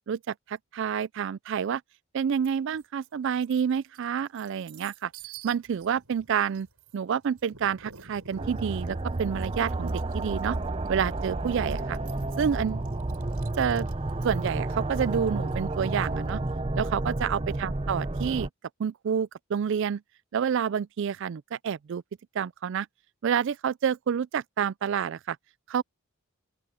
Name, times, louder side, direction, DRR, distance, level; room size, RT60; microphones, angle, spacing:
voice 1, 0.1-1.8 2.1-5.1 5.4-6.7 6.9-10.6 10.9-12.0 12.4-12.9 13.6-13.9 14.2-16.4 16.7-18.5 18.8-20.0 20.3-22.0 22.4-22.9 23.2-25.4 25.7-25.8, right 7 dB, 55° right, 0.3 m, -28 dB
sound 1, 2.4-2.9 3.3-16.5, right 6 dB, 85° right, 5.6 m, -51 dB
sound 2, 8.4-18.5, right 2 dB, 25° right, 0.7 m, -31 dB
open air
head